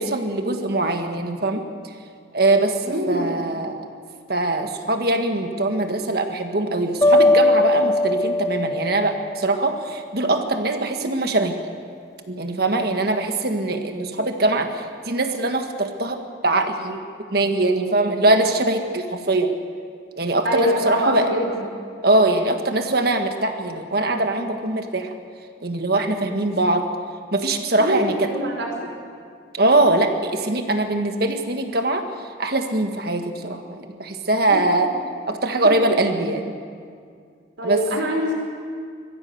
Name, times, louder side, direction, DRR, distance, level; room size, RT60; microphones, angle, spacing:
voice 1, 0.0-1.6 2.3-3.9 4.3-11.6 12.3-17.0 17.3-19.5 20.2-21.3 22.0-25.1 25.6-26.9 27.3-28.3 29.5-32.0 32.4-34.9 35.3-36.5 37.6-37.8, right 2 dB, 50° right, 5 dB, 1.6 m, -22 dB
voice 2, 2.8-3.4 20.4-21.6 27.8-28.7 34.5-34.6 35.6-35.7 37.6-38.3, equal, 75° right, 0 dB, 4.8 m, -23 dB
sound 1, 7.0-10.1, left 2 dB, 15° left, 0.8 m, -20 dB
22.0 x 15.0 x 8.0 m, 2.2 s
head